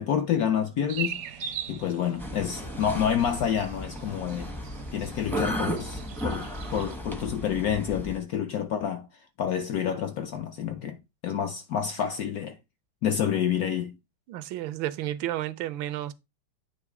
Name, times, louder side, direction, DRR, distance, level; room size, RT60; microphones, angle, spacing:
voice 1, 0.0-4.5 4.9-9.1 9.4-11.0 11.2-12.6 13.0-14.0, left 8 dB, 70° left, 0.9 m, -28 dB
sound 1, 0.9-7.0, right 8 dB, 65° right, 0.9 m, -40 dB
sound 2, 2.2-8.2, equal, ahead, 0.4 m, -34 dB
voice 2, 14.3-16.1, right 14 dB, 85° right, 1.4 m, -32 dB
8.3 x 3.1 x 4.7 m
omnidirectional pair, 2.1 m